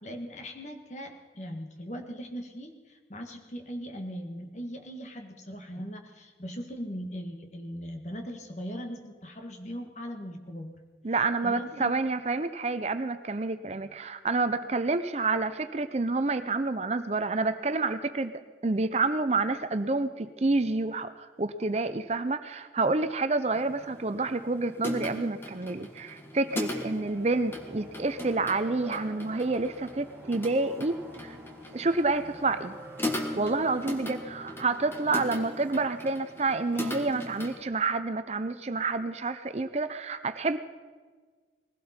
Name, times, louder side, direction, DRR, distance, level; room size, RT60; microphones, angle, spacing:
voice 1, 0.0-10.7 11.4-11.9 26.9-27.1, equal, 40° left, 4 dB, 1.7 m, -39 dB
voice 2, 11.0-18.3 18.6-31.4 31.7-32.8 33.3-40.6, right 3 dB, 35° right, 11 dB, 0.6 m, -28 dB
sound 1, 23.5-37.6, left 1 dB, 15° left, 1.5 m, -39 dB
sound 2, 26.6-35.9, right 1 dB, 10° right, 2.4 m, -49 dB
20.5 x 16.5 x 4.4 m, 1.5 s
head